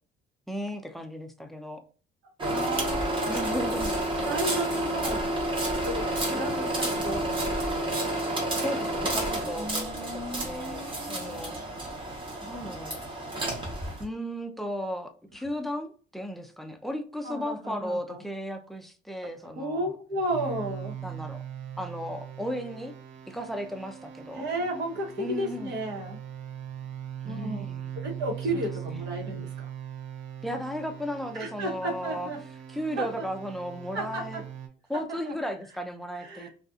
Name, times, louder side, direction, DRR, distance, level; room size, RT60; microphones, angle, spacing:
voice 1, 0.5-1.8 3.3-3.9 8.6-11.6 12.4-13.0 14.0-19.9 21.0-21.4 21.8-22.9 23.3-24.5 25.2-25.7 27.2-28.1 30.4-32.3 32.7-34.4 34.9-36.5, equal, ahead, 0.4 m, -35 dB
sound 1, 2.4-14.0, right 1 dB, 25° right, 1.0 m, -30 dB
voice 2, 2.4-3.5 4.2-5.3 5.8-8.1 9.6-11.6 17.2-18.2 19.6-21.0 24.3-26.2 27.2-27.7 27.9-29.5 31.3-32.4 33.0-33.2 33.9-34.4 35.2-35.3 36.1-36.5, right 1 dB, 65° right, 1.1 m, -33 dB
sound 2, 20.3-34.7, right 10 dB, 85° right, 0.6 m, -40 dB
2.5 x 2.4 x 2.4 m
cardioid pair, 115°, 19 cm